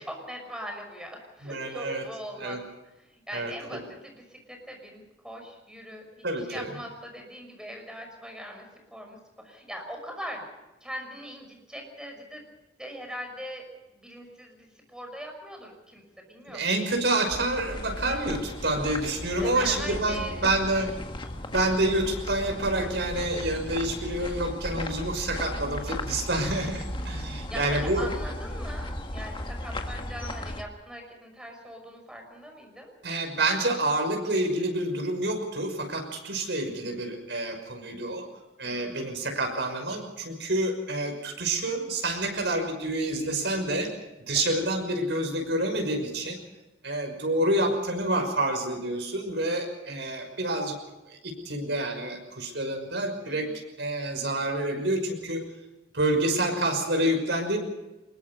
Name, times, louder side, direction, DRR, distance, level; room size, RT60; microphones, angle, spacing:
voice 1, 0.0-2.6 3.0-10.5 10.8-12.5 12.8-13.6 13.9-16.7 19.4-20.9 26.4-32.9 38.6-39.3 44.3-44.6 53.2-53.6, equal, 5° right, 3 dB, 5.8 m, -41 dB
voice 2, 1.4-2.0 2.4-2.6 3.3-3.8 6.2-6.7 16.5-20.9 21.5-28.1 33.0-38.3 38.6-43.9 44.3-46.4 46.8-50.7 51.1-53.5 53.8-55.4 55.9-57.6, right 1 dB, 75° right, 4 dB, 5.8 m, -28 dB
sound 1, 17.3-30.6, left 1 dB, 30° left, 1.8 m, -36 dB
24.5 x 21.5 x 5.5 m, 1.0 s
head